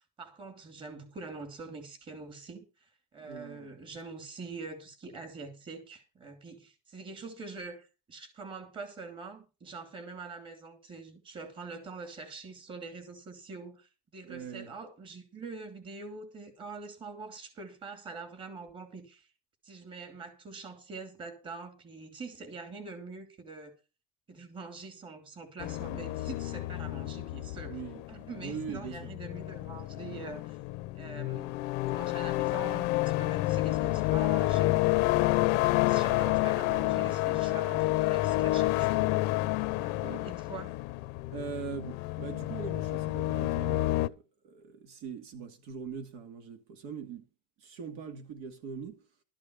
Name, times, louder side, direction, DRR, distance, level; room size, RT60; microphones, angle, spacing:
voice 1, 0.2-19.3 19.6-23.8 24.3-27.8 28.1-30.6 30.9-31.6 31.8-39.1 39.7-40.8, right 4 dB, 30° right, 2.8 m, -44 dB
voice 2, 3.2-3.7 14.2-14.7 27.6-28.0 28.4-29.1 40.0-40.3 41.3-47.2 47.6-49.0, right 6 dB, 85° right, 2.5 m, -42 dB
sound 1, 25.6-44.1, left 19 dB, 85° left, 0.7 m, -29 dB
13.0 x 5.1 x 8.0 m
cardioid pair, 155°, 16 cm